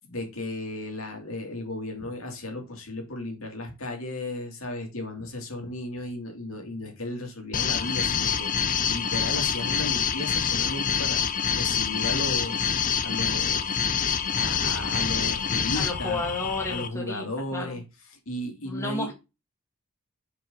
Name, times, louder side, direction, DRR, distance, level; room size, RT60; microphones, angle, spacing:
voice 1, 0.1-12.7 13.0-13.8 14.3-16.2 16.7-17.8 18.1-19.1, left 1 dB, 70° left, 2.5 m, -35 dB
sound 1, 7.5-16.9, left 7 dB, 35° left, 0.7 m, -26 dB
voice 2, 15.7-17.2 17.5-17.8 18.6-19.1, left 2 dB, 10° left, 1.8 m, -32 dB
6.2 x 4.9 x 5.4 m
head